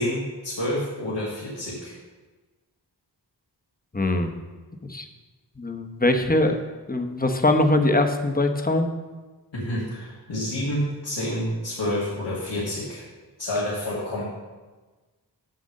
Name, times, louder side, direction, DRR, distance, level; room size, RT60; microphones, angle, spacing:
voice 1, 0.0-2.0 9.5-13.0 13.4-14.2, left 1 dB, 80° left, -7 dB, 2.0 m, -28 dB
voice 2, 3.9-4.3 4.8-5.0 5.6-6.6 6.9-8.9, left 2 dB, 20° left, 5 dB, 0.9 m, -22 dB
7.8 x 5.1 x 6.4 m, 1.3 s
cardioid pair, 45°, 43 cm